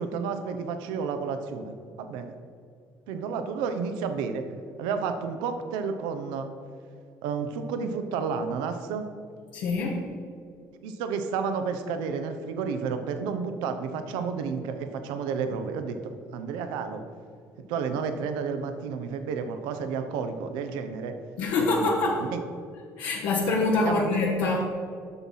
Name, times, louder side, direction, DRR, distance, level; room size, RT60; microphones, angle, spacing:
voice 1, 0.0-2.3 3.1-4.4 4.8-6.5 7.2-9.1 10.8-17.0 17.7-21.2 21.6-22.4 23.8-24.7, right 5 dB, 90° right, 8 dB, 0.7 m, -31 dB
voice 2, 9.5-10.0 21.4-22.2 23.0-24.7, left 3 dB, 80° left, -3 dB, 1.3 m, -25 dB
7.9 x 6.1 x 5.5 m, 2.2 s
supercardioid pair, 85°, 7 cm